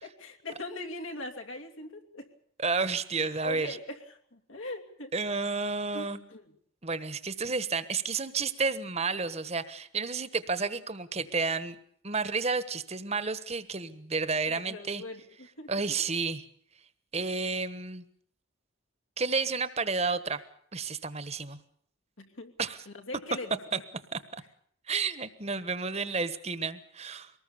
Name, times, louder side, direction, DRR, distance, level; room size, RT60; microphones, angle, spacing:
voice 1, 0.0-2.3 3.4-5.1 5.9-6.5 14.5-15.7 22.2-22.5 22.9-23.6, left 2 dB, 75° left, 3 dB, 2.8 m, -41 dB
voice 2, 2.6-3.8 5.1-6.2 6.8-11.8 12.0-15.0 15.7-16.5 17.1-18.0 19.2-20.4 20.7-21.6 22.6-22.8 24.1-24.2 24.9-27.3, right 4 dB, 30° right, 13 dB, 1.3 m, -31 dB
24.0 x 19.5 x 7.2 m, 0.64 s
head